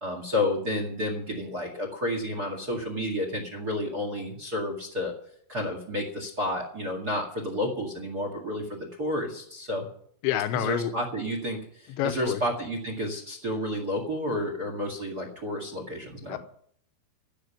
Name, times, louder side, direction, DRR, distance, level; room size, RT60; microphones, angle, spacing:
voice 1, 0.0-5.1 5.5-9.9 10.5-16.4, left 1 dB, 50° right, 3 dB, 1.1 m, -31 dB
voice 2, 10.2-10.9 11.9-12.4 16.3-16.4, left 11 dB, 85° left, 10 dB, 3.2 m, -28 dB
15.0 x 6.7 x 9.9 m, 0.64 s
omnidirectional pair, 5.5 m